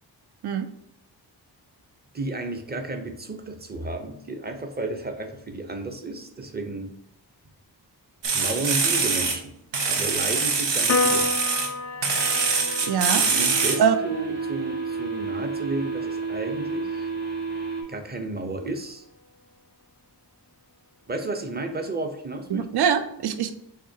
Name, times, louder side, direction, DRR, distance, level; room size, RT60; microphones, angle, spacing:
voice 1, 2.1-6.9 8.3-9.6 9.9-11.3 13.1-17.1 17.9-19.0 21.1-22.7, right 2 dB, 25° right, 5 dB, 0.7 m, -32 dB
sound 1, 8.2-9.4 9.7-11.7 12.0-13.8, right 4 dB, 80° right, 0.9 m, -23 dB
Piano, 10.9-17.6, left 4 dB, 40° left, 0.4 m, -32 dB
sound 2, 11.8-17.8, right 5 dB, 40° right, 1.6 m, -32 dB
voice 2, 12.8-13.3 13.8-14.0 22.5-23.5, right 7 dB, 65° right, 9 dB, 0.5 m, -23 dB
6.7 x 2.9 x 2.7 m, 0.76 s
wide cardioid pair, 105°, 42 cm